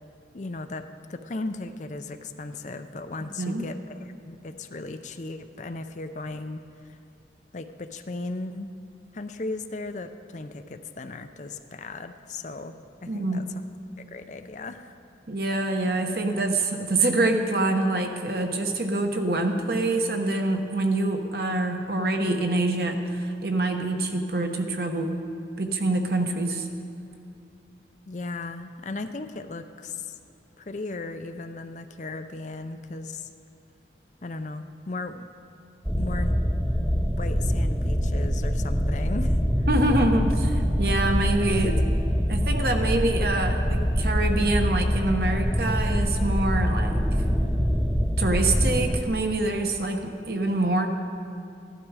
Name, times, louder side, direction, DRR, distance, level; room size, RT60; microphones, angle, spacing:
voice 1, 0.3-0.8 1.1-7.0 7.5-8.7 9.1-13.6 14.0-14.9 28.1-30.2 30.6-33.3 34.2-35.2 35.9-36.4 37.1-39.7, left 3 dB, 40° left, 9 dB, 0.5 m, -36 dB
voice 2, 13.1-13.4 15.3-25.2 25.6-26.7 39.7-41.7 42.3-47.0 48.2-50.0 50.3-50.9, right 2 dB, 55° right, 4 dB, 1.1 m, -25 dB
sound 1, 35.8-49.0, equal, 5° right, 0.6 m, -24 dB
15.5 x 12.0 x 4.8 m, 2.5 s
head